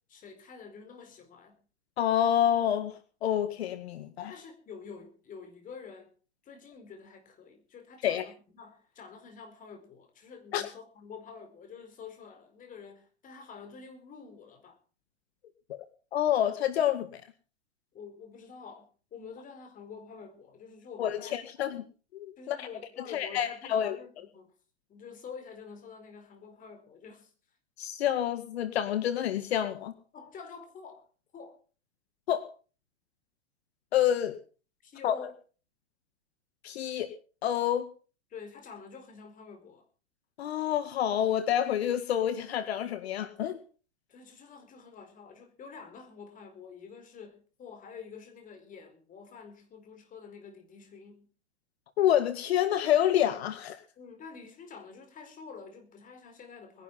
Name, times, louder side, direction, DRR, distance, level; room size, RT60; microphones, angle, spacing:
voice 1, 0.1-1.6 4.3-6.1 6.4-14.8 17.9-21.4 22.4-24.5 24.9-27.3 30.1-31.1 31.3-31.6 34.8-35.3 38.3-39.8 44.1-51.3 54.0-56.8, left 5 dB, 25° left, 4.5 m, -48 dB
voice 2, 2.0-4.3 8.0-8.3 10.5-10.6 15.7-15.8 16.1-17.2 21.0-21.8 22.1-22.7 23.1-24.0 27.8-29.9 32.3-32.5 33.9-34.4 35.0-35.2 36.6-37.1 37.4-37.9 40.4-43.6 52.0-53.8, left 10 dB, 70° left, 1.9 m, -28 dB
21.0 x 11.0 x 5.7 m
hypercardioid pair, 130°, 33 cm